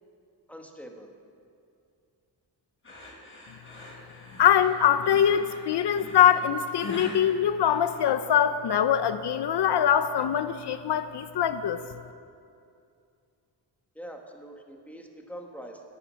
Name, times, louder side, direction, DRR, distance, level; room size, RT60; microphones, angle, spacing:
voice 1, 0.5-1.1 13.9-15.9, equal, 5° left, 2 dB, 1.4 m, -43 dB
sound 1, 2.8-8.4, left 1 dB, 25° left, 4.1 m, -43 dB
voice 2, 4.4-11.8, left 9 dB, 65° left, 11 dB, 0.7 m, -23 dB
17.0 x 13.0 x 6.3 m, 2.4 s
wide cardioid pair, 175°, 44 cm